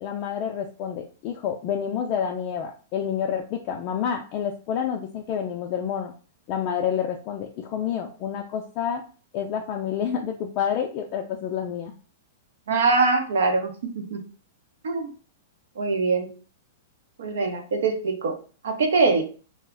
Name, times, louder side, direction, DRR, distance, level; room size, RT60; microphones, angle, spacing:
voice 1, 0.0-6.1 6.5-9.0 9.3-11.9, left 8 dB, 40° left, 3 dB, 0.3 m, -28 dB
voice 2, 12.7-14.2 14.8-15.1 15.8-16.3 17.2-18.3 18.6-19.2, right 3 dB, 80° right, 4 dB, 0.7 m, -23 dB
2.3 x 2.1 x 3.5 m, 0.38 s
hypercardioid pair, 145°, 0 cm